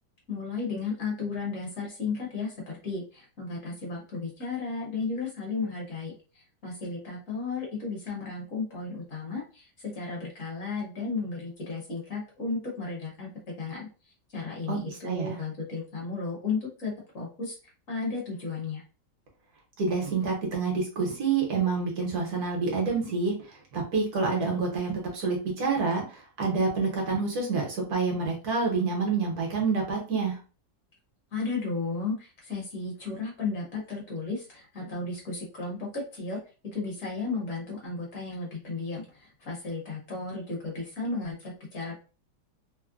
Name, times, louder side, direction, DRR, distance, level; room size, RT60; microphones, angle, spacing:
voice 1, 0.3-13.3 13.6-13.9 14.3-17.6 17.9-18.8 31.3-36.4 36.7-42.0, left 4 dB, 55° left, -2 dB, 1.3 m, -34 dB
voice 2, 14.7-15.4 19.8-23.3 23.7-30.4, right 4 dB, 65° right, 0 dB, 1.3 m, -28 dB
3.5 x 2.1 x 2.4 m, 0.35 s
omnidirectional pair, 1.9 m